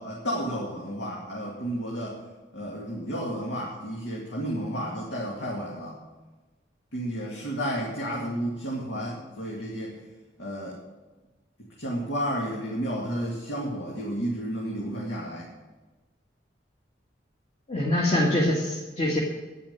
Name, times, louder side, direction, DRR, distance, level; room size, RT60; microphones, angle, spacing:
voice 1, 0.0-2.2 2.5-6.0 6.9-10.0 10.4-10.8 11.8-15.5, equal, 80° left, -3 dB, 2.3 m, -32 dB
voice 2, 17.7-19.2, left 1 dB, 35° left, -4 dB, 1.9 m, -24 dB
10.5 x 9.8 x 7.1 m, 1.2 s
head